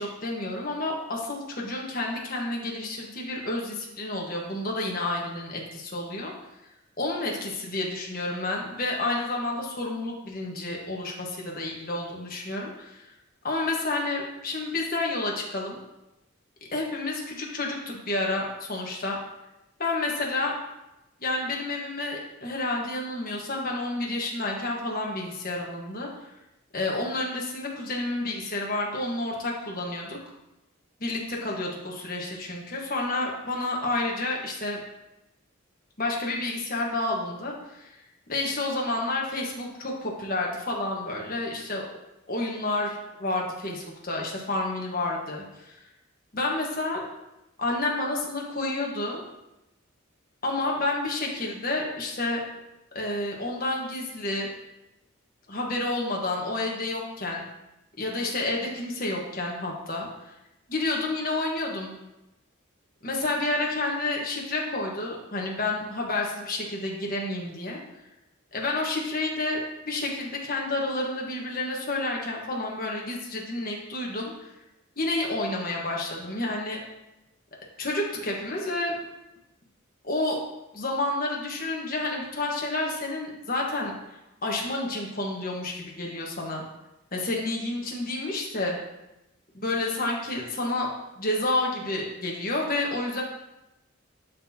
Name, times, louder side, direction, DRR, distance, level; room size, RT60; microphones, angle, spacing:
voice 1, 0.0-6.3 7.0-13.1 13.4-15.8 16.7-19.2 19.8-20.5 21.2-26.1 26.7-30.2 31.0-34.8 36.0-38.0 38.3-41.8 42.3-45.8 46.3-47.0 47.6-49.2 50.4-52.4 52.9-54.5 55.5-57.4 58.0-60.3 60.7-61.9 63.0-67.8 68.5-74.5 75.0-76.8 77.8-79.0 80.0-80.4 80.7-83.9 84.4-86.6 87.1-88.8 89.5-90.9 91.2-93.2, left 2 dB, 45° left, -1 dB, 1.4 m, -30 dB
12.0 x 4.1 x 2.8 m, 0.93 s
head